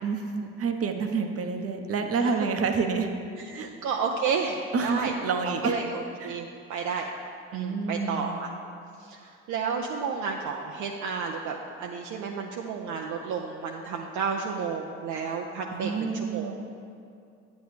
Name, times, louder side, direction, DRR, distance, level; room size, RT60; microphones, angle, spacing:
voice 1, 0.0-3.1 3.5-3.7 4.7-5.7 6.2-6.4 7.5-8.3 15.7-16.8, right 5 dB, 45° right, 5 dB, 0.9 m, -28 dB
voice 2, 3.5-5.1 5.4-7.1 7.5-8.5 9.0-16.5, right 5 dB, 60° right, 1 dB, 0.7 m, -31 dB
9.1 x 8.2 x 3.3 m, 2.4 s
hypercardioid pair, 55°, 34 cm